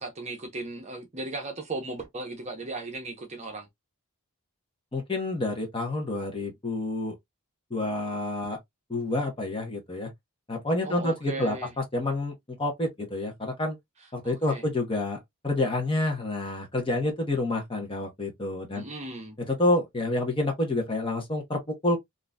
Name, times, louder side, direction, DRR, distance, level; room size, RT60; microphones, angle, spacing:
voice 1, 0.0-3.7 10.8-11.7 14.2-14.6 18.7-19.4, right 2 dB, 30° right, 0.7 m, -36 dB
voice 2, 4.9-7.2 7.7-8.6 8.9-10.1 10.5-12.3 12.6-13.8 14.1-15.2 15.4-18.8 19.4-22.0, left 2 dB, 25° left, 0.9 m, -28 dB
3.7 x 2.6 x 2.2 m
head